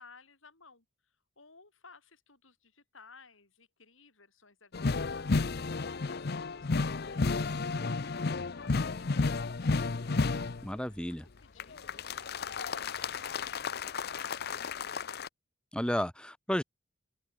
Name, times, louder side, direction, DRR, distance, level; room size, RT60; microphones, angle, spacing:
voice 1, 0.0-5.5 6.1-10.4 11.2-11.9 12.2-15.2, left 4 dB, 75° left, 6.3 m, -58 dB
sound 1, 4.7-10.7 11.6-15.3, left 4 dB, 50° left, 0.7 m, -32 dB
voice 2, 10.6-11.3 15.7-16.6, equal, 5° left, 1.3 m, -32 dB
open air
head